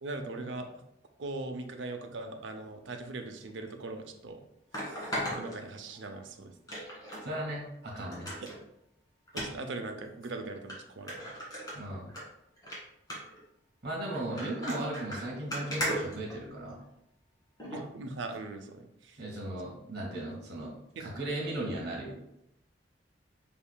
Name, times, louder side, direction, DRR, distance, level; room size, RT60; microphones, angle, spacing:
voice 1, 0.0-0.8 1.2-4.4 4.8-6.5 9.3-11.3 17.7-19.2 21.0-21.1, right 2 dB, 90° right, 5 dB, 0.6 m, -40 dB
sound 1, 3.7-3.8 4.7-6.2 6.7-7.2 7.6-7.7 8.1-8.6 9.3-9.5 10.2-10.3 10.7-10.8 11.1-12.2 12.6-12.8 13.1-13.4 14.1-16.8 17.6-17.8 18.3-18.4, equal, 20° left, 1.6 m, -37 dB
voice 2, 7.2-8.3 11.7-12.1 13.8-16.8 19.2-20.7 21.0-22.2, right 1 dB, 60° right, -2 dB, 1.5 m, -36 dB
5.3 x 3.6 x 2.3 m, 0.79 s
head